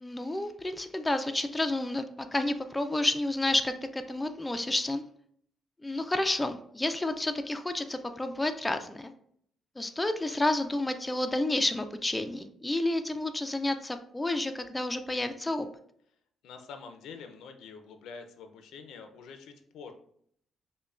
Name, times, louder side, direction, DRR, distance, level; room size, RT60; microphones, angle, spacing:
voice 1, 0.0-5.0 5.8-9.1 9.8-15.7, left 2 dB, 15° left, 7 dB, 0.3 m, -30 dB
voice 2, 16.4-19.9, left 5 dB, 80° left, 6 dB, 0.5 m, -46 dB
5.3 x 2.1 x 2.4 m, 0.66 s
cardioid pair, 90°, 0 cm